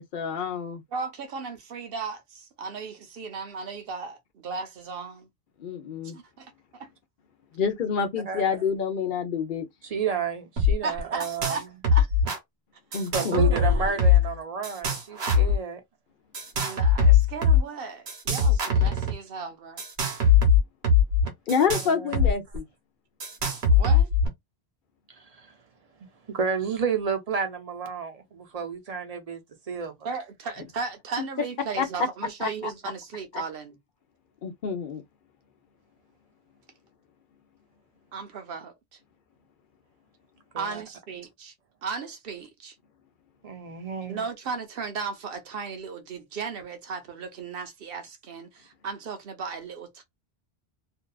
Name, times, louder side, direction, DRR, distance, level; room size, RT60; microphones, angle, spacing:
voice 1, 0.0-0.8 5.6-6.2 7.5-9.7 12.9-13.5 21.5-22.6 31.8-32.1 32.4-32.5 34.4-35.0, left 6 dB, 55° left, 0.7 m, -27 dB
voice 2, 0.9-5.3 6.1-6.9 10.8-11.6 11.9-12.1 12.9-13.0 13.3-13.8 16.6-19.8 23.7-24.1 30.0-33.8 38.1-38.7 40.6-41.5 41.8-42.7 44.1-50.0, right 5 dB, 65° right, 0.9 m, -36 dB
voice 3, 8.3-8.6 9.8-11.6 13.1-15.8 21.6-22.3 26.3-29.4 29.7-29.9 40.5-40.8 43.4-44.2, right 6 dB, 45° right, 0.7 m, -31 dB
sound 1, 10.6-10.7 11.0-11.6 11.8-12.4 12.9-14.3 14.6-15.6 16.3-17.6 18.1-19.1 19.8-22.3 22.6-22.7 23.2-24.3, left 5 dB, 80° right, 1.2 m, -21 dB
2.7 x 2.3 x 2.2 m
omnidirectional pair, 1.1 m